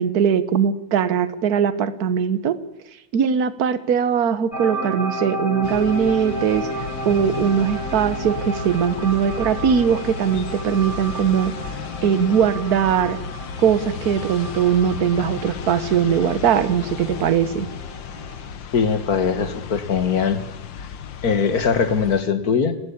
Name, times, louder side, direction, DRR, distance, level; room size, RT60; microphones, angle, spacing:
voice 1, 0.0-2.6 3.1-11.5 12.0-13.2 13.6-17.7, right 8 dB, 55° right, 14 dB, 1.5 m, -20 dB
sound 1, 4.5-18.5, right 1 dB, 35° left, 4.1 m, -33 dB
sound 2, 5.6-22.2, left 7 dB, 80° left, 1.8 m, -34 dB
voice 2, 18.7-20.4 21.2-22.8, left 6 dB, 55° left, 11 dB, 2.0 m, -21 dB
29.5 x 12.5 x 8.6 m, 0.88 s
omnidirectional pair, 2.0 m